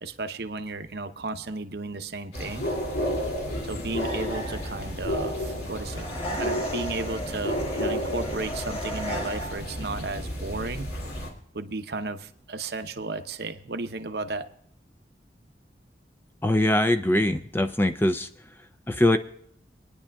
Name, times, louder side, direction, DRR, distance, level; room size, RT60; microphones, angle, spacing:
voice 1, 0.0-2.7 3.6-10.9 11.5-14.5, right 3 dB, 65° right, 9 dB, 0.7 m, -34 dB
sound 1, 2.3-11.3, equal, 65° left, 2.5 m, -31 dB
sound 2, 3.5-4.2 4.5-5.1 5.4-6.0 6.3-6.9 7.3-7.9 8.2-8.8 9.1-9.7 10.0-10.7, equal, 85° left, 4.6 m, -53 dB
sound 3, 5.9-9.8, equal, 35° left, 1.5 m, -36 dB
voice 2, 16.4-18.3 18.9-19.2, left 1 dB, 10° left, 8 dB, 0.4 m, -22 dB
24.0 x 10.0 x 2.3 m, 0.69 s
head